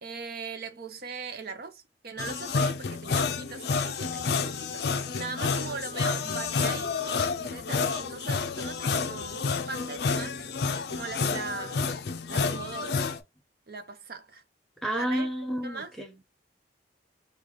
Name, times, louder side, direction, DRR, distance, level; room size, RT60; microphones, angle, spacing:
voice 1, 0.0-10.5 10.9-11.9 12.3-13.0 13.7-14.4 14.8-15.3 15.6-15.9, right 4 dB, 55° right, 0.6 m, -40 dB
sound 1, 2.2-13.2, left 4 dB, 60° left, 0.4 m, -29 dB
voice 2, 14.8-16.1, equal, ahead, 0.6 m, -30 dB
3.1 x 2.3 x 3.8 m
head